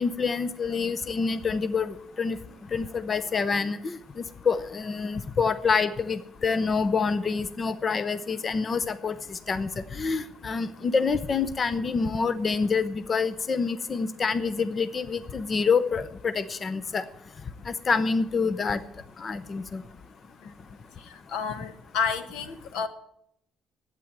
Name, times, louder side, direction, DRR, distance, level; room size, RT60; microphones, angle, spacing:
voice 1, 0.0-2.4 2.7-4.0 4.5-17.0 17.7-18.8 19.2-19.8, left 5 dB, 30° left, 14 dB, 0.6 m, -27 dB
voice 2, 21.3-22.9, left 6 dB, 80° left, 10 dB, 1.4 m, -30 dB
11.5 x 9.0 x 8.8 m, 0.74 s
cardioid pair, 145°, 0 cm